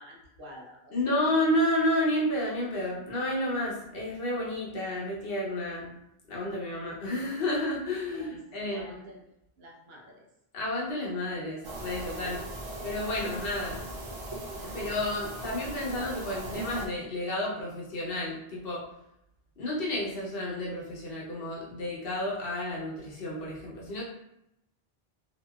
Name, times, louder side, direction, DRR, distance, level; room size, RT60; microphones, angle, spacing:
voice 1, 0.0-1.2 8.1-9.2 9.6-10.3, equal, 75° right, -2 dB, 0.8 m, -49 dB
voice 2, 0.9-6.0 6.3-8.9 10.5-12.4 12.8-13.8 14.6-18.8 19.6-24.0, left 1 dB, 65° left, -4 dB, 1.0 m, -31 dB
sound 1, 11.6-16.9, right 1 dB, 45° right, 0.4 m, -38 dB
2.9 x 2.7 x 2.2 m, 0.82 s
omnidirectional pair, 1.0 m